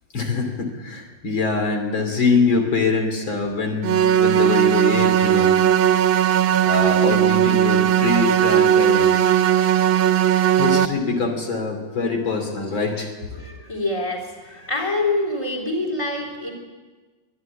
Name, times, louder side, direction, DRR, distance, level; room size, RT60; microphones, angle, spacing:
voice 1, 0.1-5.6 6.6-9.3 10.6-13.1, left 4 dB, 80° left, 4 dB, 3.7 m, -24 dB
sound 1, 3.8-10.9, right 10 dB, 85° right, 1.7 m, -17 dB
voice 2, 13.4-16.5, left 2 dB, 15° left, -1 dB, 3.6 m, -26 dB
24.0 x 11.5 x 9.8 m, 1.3 s
omnidirectional pair, 2.1 m